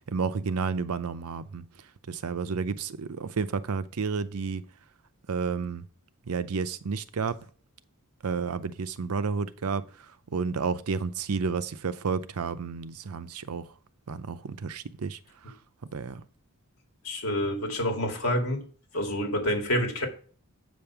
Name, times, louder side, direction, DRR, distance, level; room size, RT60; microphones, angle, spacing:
voice 1, 0.1-1.6 2.1-4.6 5.3-5.8 6.3-7.4 8.2-9.8 10.3-13.7 14.1-15.2 15.9-16.2, right 5 dB, 85° right, 0.6 m, -31 dB
voice 2, 17.0-18.6 18.9-20.1, equal, 75° left, 2.0 m, -28 dB
7.8 x 5.2 x 5.8 m
head